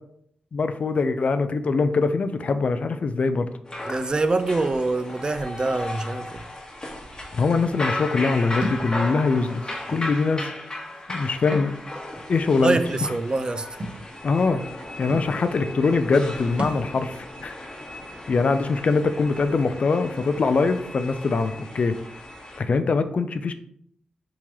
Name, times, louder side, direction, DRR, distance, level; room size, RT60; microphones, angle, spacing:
voice 1, 0.5-3.5 7.3-9.6 9.9-10.5 11.1-11.7 12.3-13.1 14.2-14.6 15.0-17.5 18.3-22.0 22.6-23.5, left 4 dB, 55° left, 0.3 m, -23 dB
sound 1, 3.7-22.6, left 1 dB, 30° left, 1.2 m, -36 dB
voice 2, 3.9-6.4 12.6-13.7, right 2 dB, 35° right, 0.3 m, -25 dB
Thump thud, 8.6-8.9 9.9-10.0 11.4-11.7 12.2-12.3 13.8-14.0 14.8-14.9 15.1-15.3 16.6-16.9, equal, 50° right, 0.8 m, -31 dB
3.6 x 2.9 x 3.0 m
cardioid pair, 55°, 3 cm